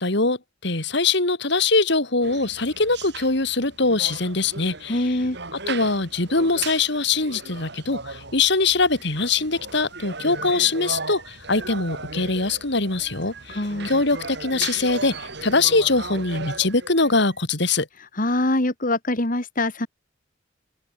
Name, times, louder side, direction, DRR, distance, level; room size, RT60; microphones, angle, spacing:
voice 1, 0.0-5.2 5.7-17.9, left 3 dB, 65° left, 3.4 m, -22 dB
sound 1, 2.2-17.4, right 3 dB, 60° right, 6.5 m, -37 dB
voice 2, 4.9-5.4 13.5-13.9 18.2-19.9, left 1 dB, 45° left, 2.6 m, -23 dB
open air
head